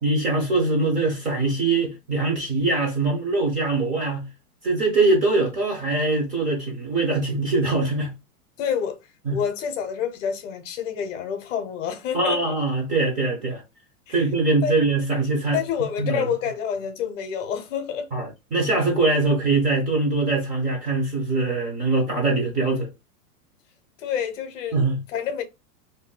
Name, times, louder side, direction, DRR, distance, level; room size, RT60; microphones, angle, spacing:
voice 1, 0.0-4.3 4.6-8.1 9.3-9.4 12.1-13.6 14.1-15.6 16.0-16.3 18.1-22.9 24.7-25.0, right 3 dB, 15° right, 0.7 m, -22 dB
voice 2, 8.6-9.0 9.3-12.6 14.1-14.2 14.6-14.8 15.5-18.1 24.0-24.8 25.1-25.4, left 8 dB, 55° left, 0.8 m, -28 dB
2.7 x 2.2 x 3.7 m
supercardioid pair, 155°, 46 cm